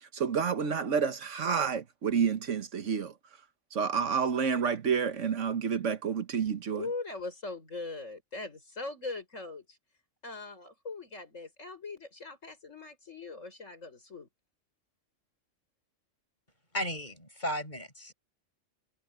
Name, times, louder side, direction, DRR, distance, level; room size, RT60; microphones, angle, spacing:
voice 1, 0.0-3.1 3.7-6.8, right 6 dB, 70° right, 1.5 m, -29 dB
voice 2, 6.7-9.8 10.2-14.3, left 3 dB, 75° left, 6.1 m, -41 dB
voice 3, 16.7-18.1, equal, 35° left, 7.8 m, -35 dB
omnidirectional pair, 1.3 m